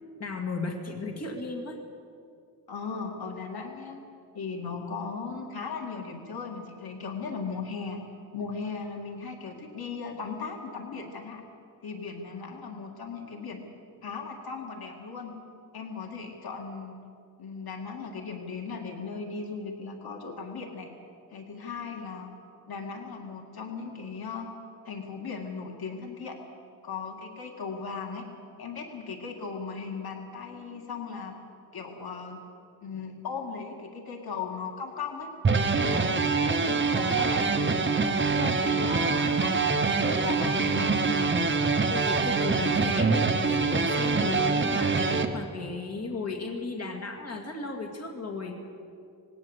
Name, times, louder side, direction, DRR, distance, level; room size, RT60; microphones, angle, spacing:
voice 1, 0.2-1.8 41.9-48.6, left 3 dB, 40° left, 2 dB, 2.2 m, -35 dB
voice 2, 2.7-4.0 4.3-8.0 8.3-11.4 11.8-13.6 14.0-15.3 15.7-17.0 17.4-20.9 21.3-22.3 22.7-24.5 24.9-26.4 26.8-28.3 28.6-31.3 31.7-32.4 32.8-35.3 35.7-37.9 38.3-41.3, left 5 dB, 70° left, 2 dB, 2.2 m, -37 dB
sound 1, 35.4-45.3, right 4 dB, 30° right, 1.1 m, -25 dB
19.5 x 17.5 x 8.1 m, 2.4 s
wide cardioid pair, 170°, 38 cm